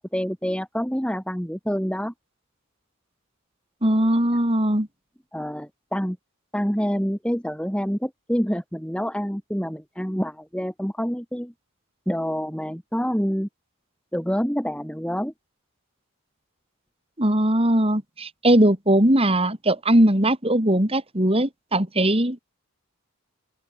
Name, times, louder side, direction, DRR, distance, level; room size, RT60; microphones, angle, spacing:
voice 1, 0.1-2.1 5.3-6.2 6.5-11.5 12.1-13.5 14.1-15.3, equal, 5° left, 7.9 m, -27 dB
voice 2, 3.8-4.9 17.2-22.4, right 1 dB, 25° right, 4.0 m, -20 dB
open air
head